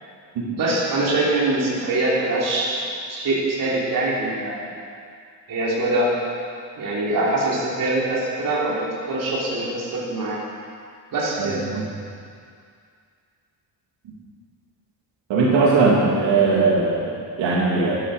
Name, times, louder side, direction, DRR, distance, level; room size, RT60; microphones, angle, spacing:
voice 1, 0.6-2.8 3.1-4.6 5.5-6.1 6.8-10.4 11.1-11.6, right 2 dB, 50° right, -6 dB, 3.5 m, -23 dB
voice 2, 11.4-11.8 15.3-18.0, right 3 dB, 85° right, -5 dB, 3.0 m, -19 dB
12.0 x 11.0 x 6.7 m, 2.3 s
cardioid pair, 175°, 43 cm